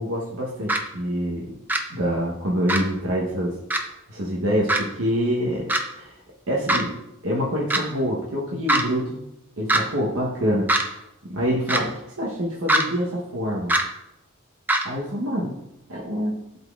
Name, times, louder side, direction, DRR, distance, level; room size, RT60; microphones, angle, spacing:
voice 1, 0.0-1.5 1.9-3.5 4.1-6.2 6.5-6.9 7.2-9.2 9.6-11.0 11.3-13.7 14.8-15.6 15.9-16.4, equal, 75° right, -4 dB, 1.1 m, -26 dB
sound 1, 0.7-0.8 1.7-1.8 2.7-2.8 3.7-3.8 4.7-4.8 5.7-5.8 6.7-6.8 7.7-7.8 8.7-8.8 9.7-9.8 10.7-10.8 11.7-11.8 12.7-12.8 13.7-13.8 14.7-14.9, right 1 dB, 10° right, 0.5 m, -20 dB
11.5 x 4.1 x 2.4 m, 0.86 s
head